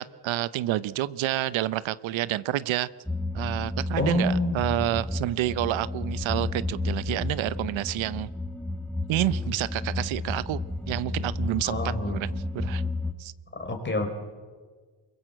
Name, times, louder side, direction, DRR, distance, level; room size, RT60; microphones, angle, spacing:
voice 1, 0.0-2.9 3.3-8.3 9.1-10.6 10.9-11.8 12.0-12.3 12.5-12.8 13.2-13.3, right 14 dB, 80° right, 17 dB, 0.8 m, -29 dB
sound 1, 3.1-13.1, left 2 dB, 5° left, 1.4 m, -32 dB
voice 2, 4.0-4.9 11.6-12.2 13.5-14.1, left 2 dB, 25° left, 6 dB, 4.0 m, -28 dB
24.5 x 22.5 x 7.7 m, 1.5 s
cardioid pair, 110°, 46 cm